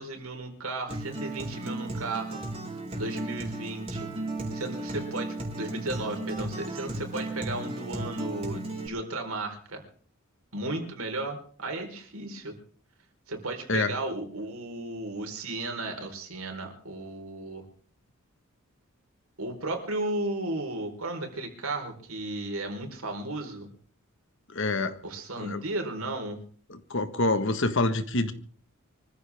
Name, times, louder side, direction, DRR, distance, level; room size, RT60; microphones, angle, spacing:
voice 1, 0.0-2.4 2.9-4.1 4.5-9.8 10.5-12.5 13.3-17.6 19.4-23.7 25.0-26.4, right 2 dB, 80° right, 4 dB, 4.3 m, -34 dB
Acoustic guitar, 0.9-8.9, right 2 dB, 30° right, 4.2 m, -35 dB
voice 2, 24.5-25.0 25.4-25.6 26.7-28.3, left 2 dB, 60° left, 10 dB, 1.5 m, -26 dB
25.0 x 14.5 x 3.6 m, 0.44 s
head